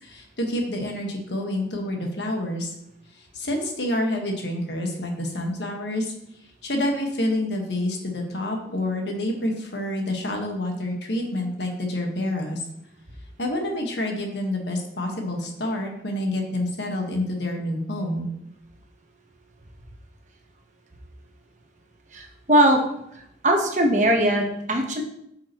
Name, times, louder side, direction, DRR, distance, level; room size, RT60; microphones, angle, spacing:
voice 1, 0.0-2.7 3.3-6.1 6.6-12.6 13.4-18.3, left 1 dB, 80° left, 2 dB, 1.5 m, -28 dB
voice 2, 22.1-22.8 23.4-25.0, right 1 dB, 45° right, 2 dB, 1.1 m, -20 dB
8.6 x 6.0 x 3.0 m, 0.77 s
head